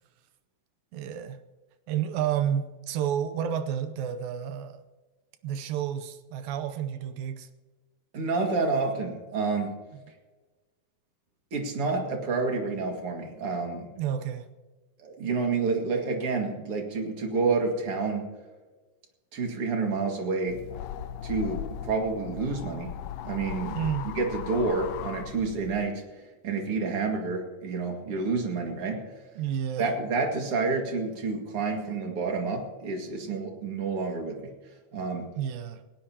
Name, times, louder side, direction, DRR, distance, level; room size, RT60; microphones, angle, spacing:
voice 1, 0.9-1.4 1.9-4.8 5.4-7.5 14.0-14.5 23.7-24.1 29.4-29.9 35.4-35.8, right 9 dB, 75° right, 2.4 m, -30 dB
voice 2, 8.1-9.7 11.5-13.9 15.0-18.3 19.3-20.6 21.2-22.9 23.2-23.8 24.0-29.1 29.8-34.5 34.9-35.3, right 4 dB, 45° right, 2.5 m, -29 dB
sound 1, 20.5-25.9, left 10 dB, 85° left, 1.9 m, -38 dB
20.0 x 17.5 x 2.9 m
omnidirectional pair, 4.5 m